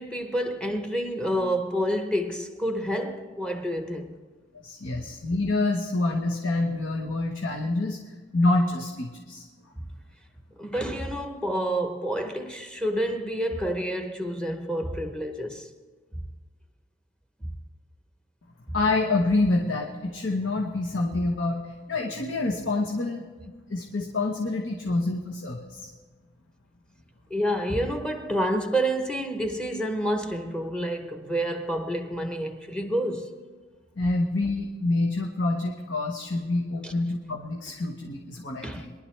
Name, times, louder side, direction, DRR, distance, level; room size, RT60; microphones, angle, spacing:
voice 1, 0.0-4.1 9.8-9.9 10.6-15.7 27.3-33.4 36.8-36.9 38.6-38.9, equal, 5° left, 0.9 m, -28 dB
voice 2, 4.6-8.0 8.3-9.4 18.7-23.2 23.7-25.9 34.0-38.9, left 2 dB, 75° left, 1.1 m, -27 dB
22.5 x 11.5 x 3.3 m
head